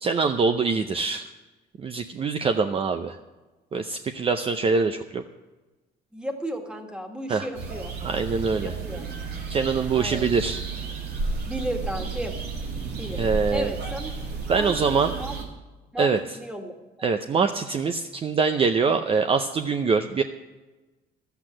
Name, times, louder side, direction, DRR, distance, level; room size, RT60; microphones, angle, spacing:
voice 1, 0.0-1.3 1.8-3.2 3.7-5.2 7.3-7.5 8.0-8.7 9.5-10.6 13.2-13.7 14.5-15.1 16.0-16.4 17.0-20.2, right 5 dB, 35° right, 7 dB, 0.6 m, -24 dB
voice 2, 6.1-7.9 8.6-9.0 9.9-10.3 11.5-12.3 13.0-13.2 13.5-14.1 14.6-15.3 15.9-16.7, equal, 5° right, 4 dB, 1.8 m, -34 dB
sound 1, 7.5-15.4, right 4 dB, 75° right, 2.4 m, -32 dB
12.0 x 8.2 x 7.6 m, 1.2 s
cardioid pair, 110°, 17 cm